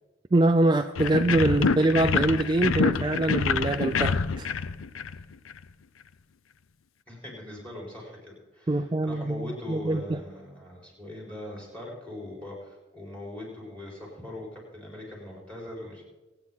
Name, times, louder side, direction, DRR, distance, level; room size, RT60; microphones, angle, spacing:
voice 1, 0.3-4.5 8.7-10.2, right 2 dB, 20° right, 7 dB, 0.3 m, -24 dB
sound 1, 1.0-5.6, left 5 dB, 85° left, 0.5 m, -26 dB
voice 2, 7.1-16.0, left 1 dB, 5° left, -2 dB, 4.8 m, -41 dB
24.5 x 9.0 x 4.0 m, 1.2 s
head